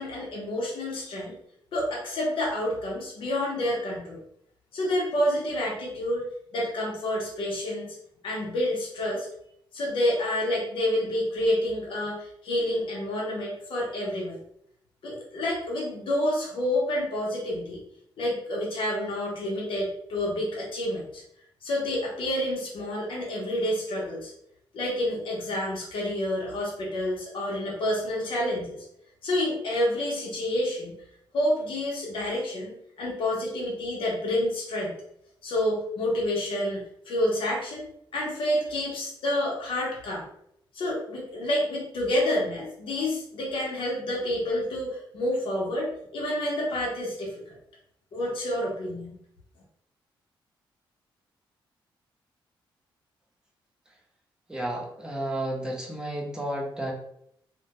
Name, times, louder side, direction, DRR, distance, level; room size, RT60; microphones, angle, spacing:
voice 1, 0.0-1.3 1.7-4.2 4.7-6.2 6.5-8.0 8.2-9.3 9.7-14.4 15.0-17.8 18.2-21.2 21.6-24.3 24.7-28.8 29.2-31.0 31.3-35.0 35.4-37.9 38.1-40.2 40.7-47.4 48.1-49.2, left 1 dB, 75° left, -4 dB, 0.7 m, -28 dB
voice 2, 54.5-56.9, right 1 dB, 10° right, -2 dB, 0.7 m, -32 dB
2.2 x 2.1 x 2.8 m, 0.73 s
cardioid pair, 90°, 9 cm